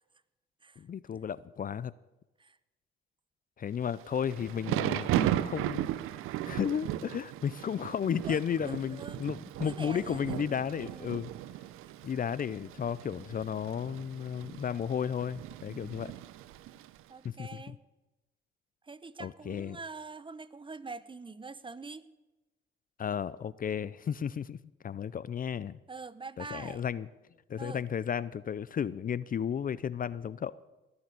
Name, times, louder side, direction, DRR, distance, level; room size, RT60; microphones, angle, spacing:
voice 1, 0.8-1.9 3.6-5.9 6.5-11.3 12.0-16.1 17.2-17.8 19.2-19.8 23.0-24.6 24.8-25.8 26.4-27.1 27.5-30.5, left 8 dB, 40° left, 19 dB, 0.5 m, -33 dB
Thunder / Rain, 3.9-17.0, right 13 dB, 85° right, 0.6 m, -36 dB
voice 2, 8.2-9.2 9.6-11.2 11.8-11.9 15.6-16.2 17.1-17.8 18.8-22.1 25.9-26.9 27.6-27.9, right 4 dB, 25° right, 17 dB, 0.8 m, -45 dB
19.0 x 7.0 x 9.4 m, 1.1 s
supercardioid pair, 65°, 21 cm